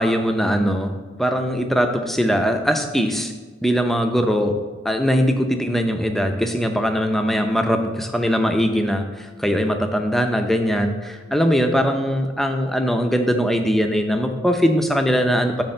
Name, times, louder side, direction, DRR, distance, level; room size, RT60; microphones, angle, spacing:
voice 1, 0.0-3.3 3.6-4.6 4.8-15.6, equal, ahead, 5 dB, 0.5 m, -21 dB
8.6 x 3.3 x 6.6 m, 1.4 s
head